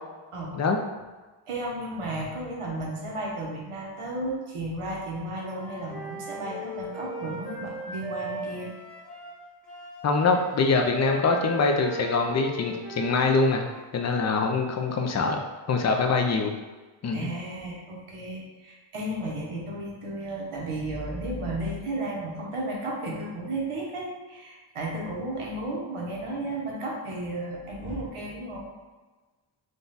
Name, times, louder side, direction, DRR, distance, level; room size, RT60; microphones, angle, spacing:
voice 1, 1.5-8.7 17.1-28.6, right 1 dB, 90° right, -2 dB, 1.0 m, -33 dB
Wind instrument woodwind instrument, 5.3-13.9, right 1 dB, ahead, 0.9 m, -38 dB
voice 2, 10.0-13.7 13.9-15.4 15.7-16.5 17.0-17.3, left 4 dB, 35° left, 3 dB, 0.4 m, -24 dB
3.8 x 2.3 x 3.9 m, 1.3 s
wide cardioid pair, 145°, 50 cm